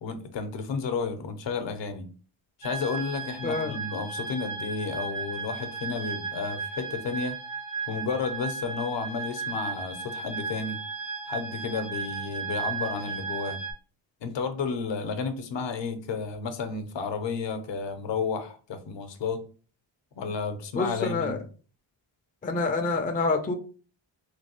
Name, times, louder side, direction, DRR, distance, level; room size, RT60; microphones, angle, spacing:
voice 1, 0.0-2.1 2.6-7.4 7.9-10.8 11.3-13.6 14.2-19.4 20.2-21.4, left 5 dB, 65° left, 0.7 m, -32 dB
sound 1, 2.6-13.7, right 5 dB, 80° right, 1.7 m, -35 dB
voice 2, 3.4-3.8 20.8-21.4 22.4-23.5, left 3 dB, 20° left, 0.3 m, -27 dB
3.2 x 2.6 x 2.8 m
wide cardioid pair, 95°, 47 cm